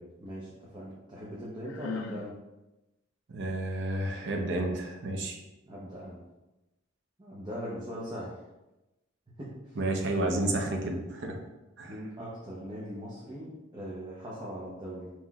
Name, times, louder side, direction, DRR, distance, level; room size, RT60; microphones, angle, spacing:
voice 1, 0.2-2.3 5.7-6.2 7.2-8.3 9.4-9.8 11.8-15.1, equal, 25° right, -6 dB, 0.7 m, -40 dB
Sigh, 1.6-2.3, left 5 dB, 70° left, 0.3 m, -38 dB
voice 2, 3.3-5.4 9.8-11.4 11.8-12.0, right 1 dB, 65° right, 2 dB, 0.6 m, -31 dB
5.6 x 3.1 x 2.3 m, 1.0 s
head